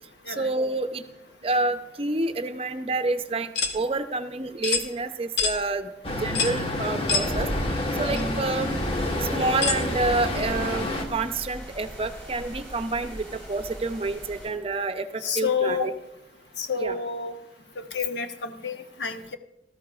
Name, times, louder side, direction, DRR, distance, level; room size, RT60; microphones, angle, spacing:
voice 1, 0.3-1.0 1.4-7.5 7.9-8.8 9.2-15.9 16.8-17.0, right 3 dB, 35° right, 9 dB, 0.7 m, -28 dB
sound 1, 3.6-3.8 4.6-4.9 5.4-5.6 6.4-6.6 7.1-7.3 8.1-8.2 9.6-9.8, left 5 dB, 90° left, 1.3 m, -25 dB
Traffic noise roadway noise, 6.0-11.1, left 1 dB, 30° left, 1.3 m, -28 dB
sound 2, 8.5-14.5, equal, 10° left, 4.1 m, -40 dB
voice 2, 15.2-15.9 16.6-17.3 17.8-19.4, left 5 dB, 75° left, 6 dB, 1.0 m, -29 dB
18.0 x 13.5 x 2.4 m, 0.93 s
head